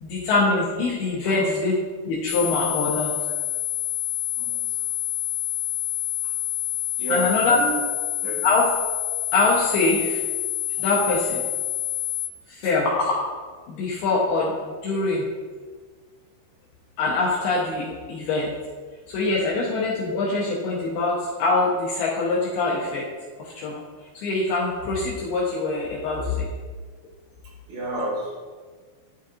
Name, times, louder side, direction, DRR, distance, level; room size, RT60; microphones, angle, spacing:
voice 1, 0.0-1.8 2.0-3.1 7.1-7.6 8.4-8.7 9.3-10.2 10.8-11.4 12.5-13.2 13.7-15.2 17.0-18.5 19.1-23.1 23.4-23.8 24.1-26.5, left 3 dB, 75° left, -5 dB, 2.4 m, -24 dB
sound 1, 2.3-12.3, left 13 dB, 60° left, 1.8 m, -28 dB
voice 2, 4.4-4.8 7.0-7.8 8.2-8.5 27.7-28.3, right 1 dB, 75° right, -5 dB, 4.0 m, -30 dB
11.5 x 4.0 x 2.5 m, 1.5 s
omnidirectional pair, 5.3 m